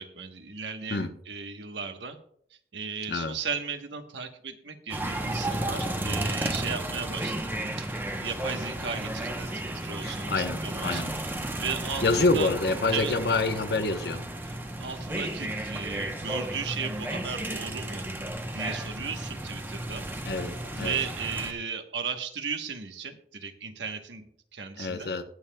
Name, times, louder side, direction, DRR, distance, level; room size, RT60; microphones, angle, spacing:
voice 1, 0.0-2.2 2.7-7.5 7.8-12.5 12.9-13.2 14.4-14.5 14.8-18.0 18.5-20.1 20.7-25.1, right 6 dB, 80° right, 7 dB, 1.1 m, -36 dB
sound 1, 4.9-21.5, right 1 dB, 10° right, 0.8 m, -33 dB
voice 2, 10.0-11.1 12.0-14.2 20.2-21.0 24.8-25.2, left 3 dB, 60° left, 8 dB, 0.9 m, -27 dB
20.5 x 7.2 x 2.2 m, 0.66 s
head